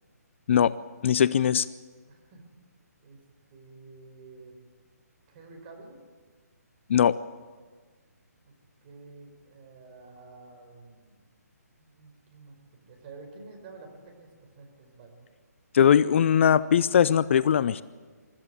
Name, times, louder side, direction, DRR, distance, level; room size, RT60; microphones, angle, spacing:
voice 1, 1.0-1.7 6.9-7.2 15.7-17.8, left 8 dB, 45° left, 17 dB, 0.5 m, -20 dB
voice 2, 2.1-2.4 3.0-3.2 3.5-4.6 5.3-6.0 8.4-8.5 8.8-11.2 11.8-15.1, right 3 dB, 35° right, 3 dB, 5.0 m, -49 dB
24.5 x 13.0 x 8.3 m, 1.5 s
hypercardioid pair, 150°, 9 cm